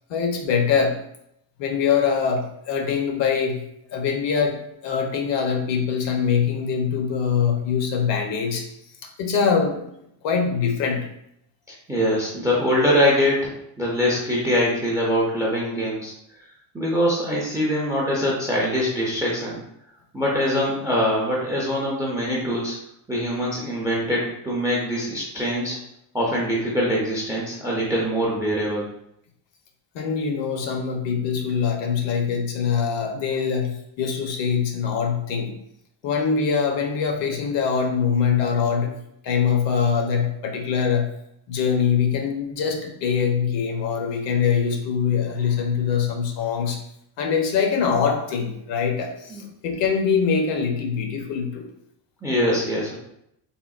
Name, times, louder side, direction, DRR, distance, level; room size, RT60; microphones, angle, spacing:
voice 1, 0.1-1.0 1.6-3.6 3.9-8.7 9.0-9.8 10.2-11.1 29.9-35.6 36.0-39.0 39.2-41.1 41.5-46.8 47.2-51.7, left 6 dB, 65° left, 3 dB, 0.7 m, -23 dB
voice 2, 11.7-16.4 16.7-19.6 20.1-22.8 23.1-25.8 26.1-28.9 49.3-49.5 52.2-53.0, equal, 10° right, -4 dB, 0.3 m, -23 dB
3.7 x 2.0 x 2.3 m, 0.77 s
cardioid pair, 135°, 49 cm